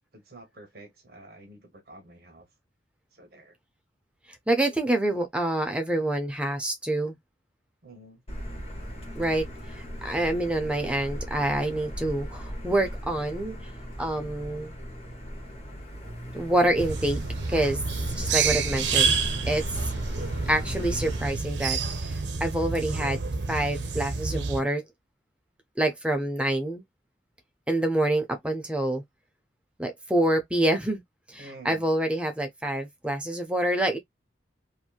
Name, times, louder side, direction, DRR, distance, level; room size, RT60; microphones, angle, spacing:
voice 1, 0.1-2.5 3.1-3.5 7.8-8.2 31.4-31.9, right 1 dB, 60° right, 1.0 m, -49 dB
voice 2, 4.5-7.2 9.2-9.5 9.7-13.6 14.0-14.7 16.3-17.2 17.5-17.8 18.2-19.1 19.5-19.6 20.5-23.2 23.5-24.8 25.8-26.8 27.7-29.0 29.8-31.0 31.3-34.0, right 1 dB, 5° right, 0.5 m, -26 dB
Motor vehicle (road), 8.3-21.3, equal, 35° left, 1.1 m, -38 dB
sound 1, 16.8-24.6, right 5 dB, 85° right, 0.6 m, -29 dB
2.9 x 2.7 x 2.3 m
head